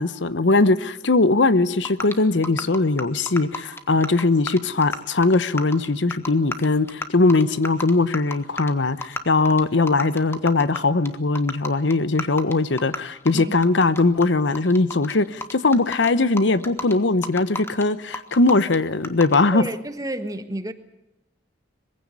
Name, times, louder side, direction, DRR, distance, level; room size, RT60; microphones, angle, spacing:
voice 1, 0.0-19.6, left 3 dB, 75° left, 0.9 m, -20 dB
sound 1, 1.8-2.1 2.4-5.0 5.2-8.7 9.0-9.2 9.4-9.6 9.9-10.8 11.0-11.1 11.3-13.0 13.3-14.2 14.5-16.1 16.4-16.9 17.2-17.8 18.1-18.8 19.0-19.4, left 2 dB, 15° left, 1.5 m, -31 dB
voice 2, 19.5-20.7, right 1 dB, 20° right, 1.4 m, -30 dB
22.0 x 16.0 x 9.6 m
head